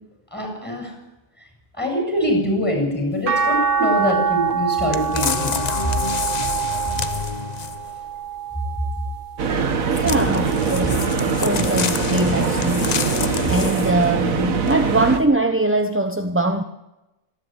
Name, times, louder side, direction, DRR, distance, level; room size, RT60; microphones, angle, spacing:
voice 1, 0.3-0.9 1.7-5.6, left 1 dB, 5° left, 2 dB, 7.3 m, -23 dB
sound 1, 3.3-9.6 10.1-11.5 12.9-13.0, right 6 dB, 85° right, 2.0 m, -26 dB
sound 2, 4.9-7.9 9.9-14.1 14.7-14.8, left 6 dB, 40° left, 0.7 m, -27 dB
sound 3, 9.4-15.2, right 5 dB, 70° right, 1.8 m, -22 dB
voice 2, 10.0-13.0 13.5-16.6, right 1 dB, 10° right, 6 dB, 0.7 m, -22 dB
26.0 x 11.5 x 9.1 m, 0.97 s
omnidirectional pair, 1.5 m